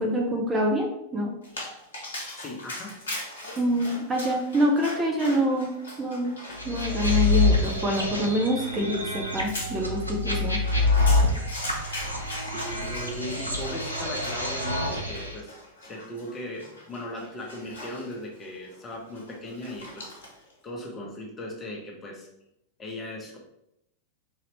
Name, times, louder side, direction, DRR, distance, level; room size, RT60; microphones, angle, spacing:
voice 1, 0.0-1.3 3.6-5.7 6.0-6.3 6.6-10.6, equal, 15° right, -1 dB, 0.6 m, -26 dB
Dog, 1.4-20.5, left 1 dB, 65° left, 1.0 m, -41 dB
voice 2, 2.4-3.0 12.3-20.1 20.6-22.3 22.8-23.4, left 1 dB, 20° left, 0 dB, 0.9 m, -38 dB
sound 1, 6.6-15.4, left 2 dB, 90° right, 0.6 m, -26 dB
3.9 x 2.9 x 3.0 m, 0.81 s
figure-of-eight pair, 90°, 0 cm